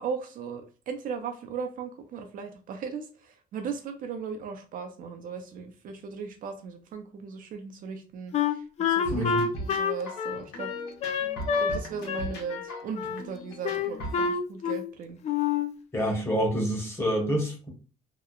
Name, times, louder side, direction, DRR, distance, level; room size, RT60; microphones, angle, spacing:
voice 1, 0.0-10.7 11.6-15.2, right 6 dB, 55° right, 6 dB, 0.4 m, -37 dB
Wind instrument woodwind instrument, 8.3-11.8 12.1-13.2 13.6-14.9 15.2-15.7, left 6 dB, 40° left, 0.4 m, -28 dB
sound 1, 9.1-14.3, equal, 90° left, 0.9 m, -39 dB
voice 2, 9.1-9.4 15.9-17.7, equal, 15° left, 0 dB, 1.0 m, -27 dB
2.8 x 2.0 x 2.3 m, 0.36 s
cardioid pair, 110°, 17 cm